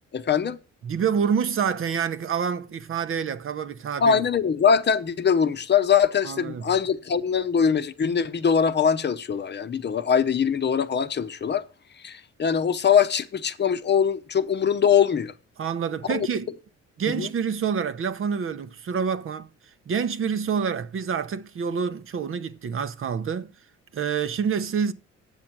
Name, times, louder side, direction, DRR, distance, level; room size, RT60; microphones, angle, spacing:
voice 1, 0.1-0.6 4.0-11.6 12.0-15.3 16.1-16.3 17.1-17.3, left 7 dB, 35° left, 0.8 m, -22 dB
voice 2, 0.8-4.2 6.2-6.6 15.6-16.5 17.0-19.5 19.9-23.5 23.9-24.9, right 7 dB, 45° right, 0.7 m, -27 dB
8.9 x 7.5 x 6.0 m
cardioid pair, 90°, 30 cm